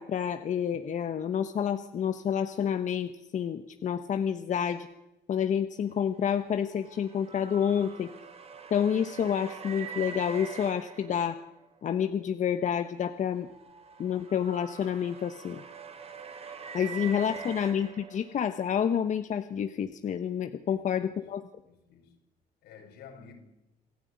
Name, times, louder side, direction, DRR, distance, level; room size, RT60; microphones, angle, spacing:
voice 1, 0.0-4.9 5.3-8.1 8.7-11.4 11.8-13.5 14.0-15.6 16.7-21.4, left 8 dB, 45° left, 1.1 m, -29 dB
sound 1, 6.1-11.8 13.1-18.5, right 6 dB, 35° right, 2.8 m, -44 dB
voice 2, 20.7-21.0 21.7-22.2 22.6-23.3, left 6 dB, 80° left, 5.8 m, -52 dB
27.0 x 13.5 x 9.8 m
cardioid pair, 110°, 17 cm